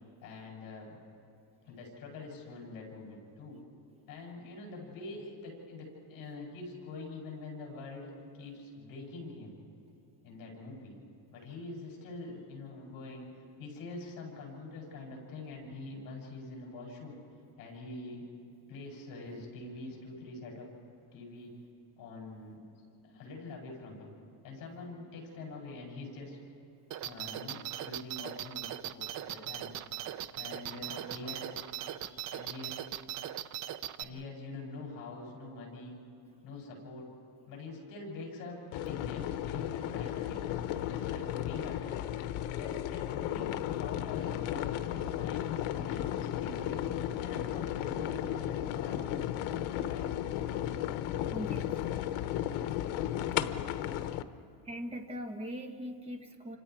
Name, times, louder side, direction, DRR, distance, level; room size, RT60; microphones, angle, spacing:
voice 1, 0.2-1.0 1.6-3.6 4.1-8.1 8.4-9.6 10.2-11.0 11.3-17.2 17.6-18.3 18.7-20.7 21.1-21.5 22.0-22.6 23.0-24.1 24.4-26.4 27.0-27.6 27.8-29.8 30.4-32.7 34.0-36.0 36.4-37.1 37.5-40.4 40.9-42.1 42.5-43.5 43.8-49.2 49.9-50.1, left 3 dB, 45° left, -1 dB, 7.4 m, -45 dB
sound 1, 26.9-34.0, right 12 dB, 40° right, 0.5 m, -39 dB
sound 2, 38.7-54.2, left 11 dB, 80° left, 1.1 m, -34 dB
voice 2, 51.3-51.7 54.7-56.6, equal, 10° right, 4 dB, 1.3 m, -40 dB
29.5 x 26.0 x 4.8 m, 2.8 s
cardioid pair, 180°, 48 cm